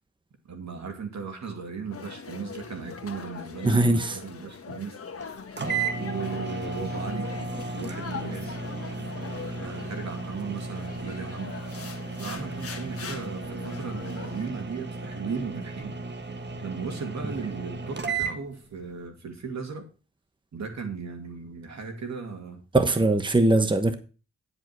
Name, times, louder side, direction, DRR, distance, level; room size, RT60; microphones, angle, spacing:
voice 1, 0.5-3.8 4.1-5.0 6.0-7.3 7.7-8.6 9.6-11.5 12.2-15.9 16.6-19.8 20.5-22.6, right 5 dB, 65° right, 4 dB, 2.5 m, -36 dB
sound 1, 1.9-14.5, left 5 dB, 50° left, 1.4 m, -41 dB
voice 2, 3.6-4.2 22.7-23.9, right 2 dB, 15° right, 7 dB, 1.2 m, -21 dB
sound 2, 5.2-5.3 5.6-18.4, right 4 dB, 35° right, 1.4 m, -34 dB
10.0 x 5.2 x 6.1 m, 0.35 s
cardioid pair, 55°, 29 cm